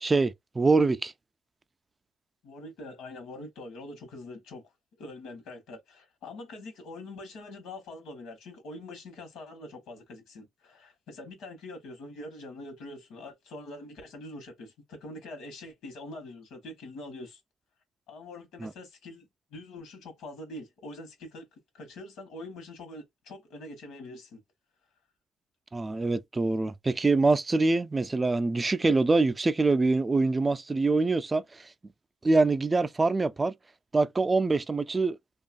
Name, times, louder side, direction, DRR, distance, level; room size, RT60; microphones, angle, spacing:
voice 1, 0.0-1.1 18.6-18.7 25.7-31.4 32.2-33.5 33.9-35.2, right 3 dB, 25° right, 0.3 m, -24 dB
voice 2, 2.4-4.7 5.0-17.4 18.1-24.4, left 2 dB, 85° left, 1.0 m, -44 dB
2.7 x 2.3 x 2.4 m
cardioid pair, 90°, 0 cm